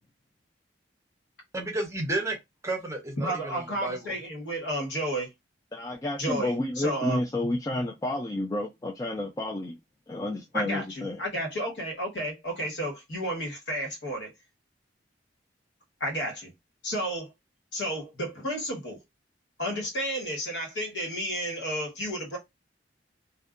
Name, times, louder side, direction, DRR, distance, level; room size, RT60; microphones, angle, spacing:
voice 1, 1.5-2.4 2.6-4.1, right 2 dB, 15° right, 0.7 m, -32 dB
voice 2, 3.2-5.3 6.2-7.2 10.5-14.3 16.0-16.5 16.8-17.3 17.7-19.0 19.6-22.4, right 1 dB, 70° left, 1.2 m, -32 dB
voice 3, 5.7-9.8 10.1-11.2, left 1 dB, 20° left, 0.4 m, -30 dB
2.6 x 2.2 x 2.4 m
head